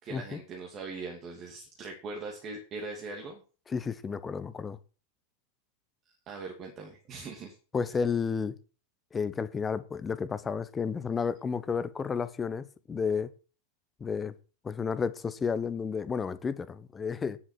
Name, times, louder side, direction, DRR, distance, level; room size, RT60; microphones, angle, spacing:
voice 1, 0.0-3.4 6.3-7.6, right 3 dB, 30° right, 2.8 m, -41 dB
voice 2, 3.7-4.8 7.7-8.5 9.1-13.3 14.0-14.3 14.6-17.4, left 5 dB, 15° left, 1.0 m, -32 dB
10.0 x 7.9 x 6.2 m
figure-of-eight pair, 90°, 0 cm